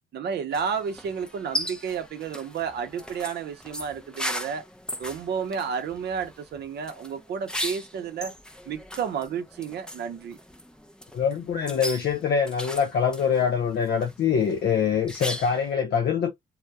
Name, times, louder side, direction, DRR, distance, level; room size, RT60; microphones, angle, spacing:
voice 1, 0.1-4.7 5.0-8.3 8.7-10.4, right 6 dB, 55° right, 0.6 m, -31 dB
sound 1, 0.5-15.7, equal, 5° left, 0.5 m, -38 dB
voice 2, 11.1-16.3, left 7 dB, 55° left, 0.5 m, -24 dB
2.2 x 2.1 x 2.6 m
cardioid pair, 90°, 20 cm